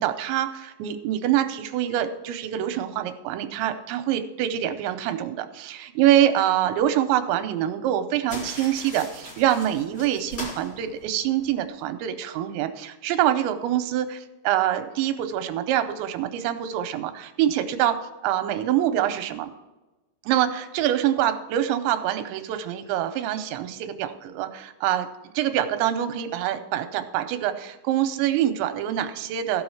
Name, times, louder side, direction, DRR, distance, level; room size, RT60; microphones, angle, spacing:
voice 1, 0.0-18.0 18.2-19.5 20.3-25.1 25.3-29.6, right 11 dB, 90° right, 9 dB, 3.0 m, -25 dB
sound 1, 8.3-11.6, left 1 dB, 45° left, 1.4 m, -40 dB
16.0 x 6.3 x 4.7 m, 1.1 s
omnidirectional pair, 5.3 m